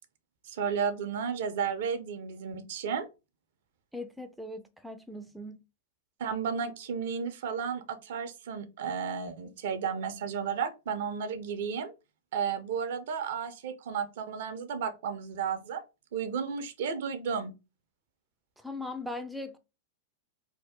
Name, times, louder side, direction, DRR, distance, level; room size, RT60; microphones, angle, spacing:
voice 1, 0.4-3.1 6.2-11.9 12.3-15.8 16.1-17.5, right 6 dB, 65° right, 0.6 m, -33 dB
voice 2, 3.9-5.6 18.6-19.6, left 2 dB, ahead, 0.4 m, -39 dB
2.7 x 2.1 x 3.5 m
hypercardioid pair, 95°, 0 cm